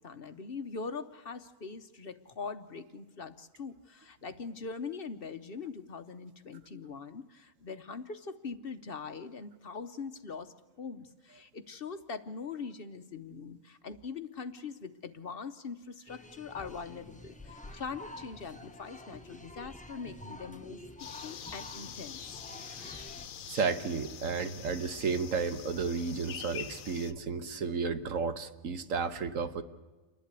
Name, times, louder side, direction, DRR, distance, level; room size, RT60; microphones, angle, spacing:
voice 1, 0.0-22.4, left 5 dB, 50° left, 9 dB, 0.9 m, -42 dB
sound 1, 16.1-23.3, left 1 dB, 5° left, 0.7 m, -49 dB
sound 2, 21.0-27.1, left 9 dB, 85° left, 1.2 m, -45 dB
voice 2, 22.6-23.1 23.5-29.6, right 5 dB, 75° right, 10 dB, 1.4 m, -33 dB
28.5 x 11.5 x 8.2 m, 1.2 s
omnidirectional pair, 1.4 m